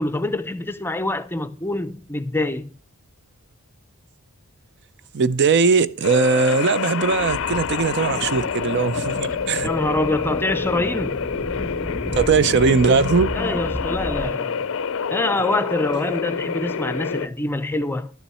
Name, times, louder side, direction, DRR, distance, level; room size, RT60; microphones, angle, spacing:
voice 1, 0.0-2.7 9.6-11.2 13.3-14.7 15.1-18.1, left 2 dB, 10° left, 0.5 m, -25 dB
voice 2, 5.1-9.7 12.1-13.3, right 4 dB, 50° right, 0.5 m, -19 dB
sound 1, 6.0-17.3, left 6 dB, 60° left, 0.5 m, -27 dB
sound 2, 7.0-14.3, left 1 dB, 25° right, 1.6 m, -33 dB
11.5 x 7.1 x 5.5 m
head